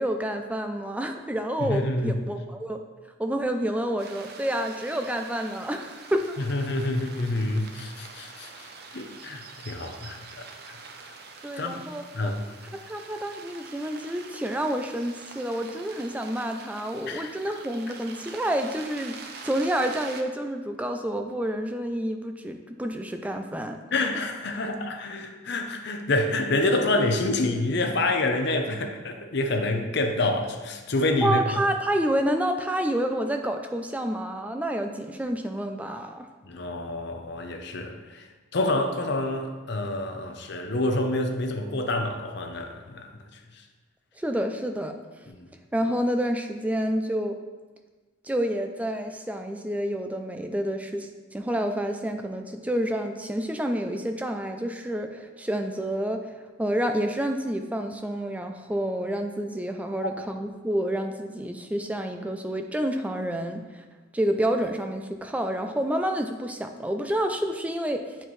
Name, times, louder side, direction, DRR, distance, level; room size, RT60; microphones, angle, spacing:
voice 1, 0.0-2.8 3.2-6.4 11.4-12.3 12.7-23.8 31.2-36.3 44.2-45.2 45.7-47.4 48.2-63.9 64.1-68.2, right 1 dB, 5° right, 5 dB, 0.3 m, -29 dB
voice 2, 1.6-2.1 6.4-10.2 10.7-10.8 11.0-11.1 11.6-11.8 12.1-12.4 17.1-17.3 23.9-31.4 36.5-38.3 38.5-43.6 45.3-45.5 60.0-60.1, left 2 dB, 55° left, 5 dB, 0.7 m, -27 dB
sound 1, 4.0-20.2, right 4 dB, 50° right, 0.6 m, -45 dB
8.8 x 4.4 x 3.1 m, 1.3 s
head